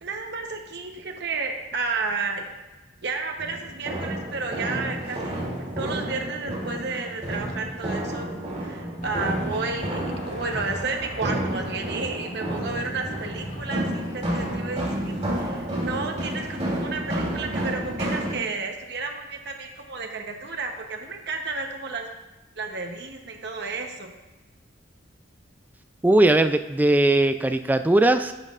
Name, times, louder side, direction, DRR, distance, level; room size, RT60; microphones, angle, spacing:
voice 1, 0.0-2.5 3.0-5.5 5.8-22.1 22.6-24.1, right 4 dB, 60° right, 3 dB, 0.9 m, -32 dB
sound 1, 3.4-18.3, right 1 dB, 35° right, 2.6 m, -30 dB
sound 2, 9.0-15.7, left 2 dB, 40° left, 0.8 m, -42 dB
voice 2, 26.0-28.3, right 2 dB, 10° right, 9 dB, 0.3 m, -19 dB
11.0 x 7.3 x 2.5 m, 1.1 s
head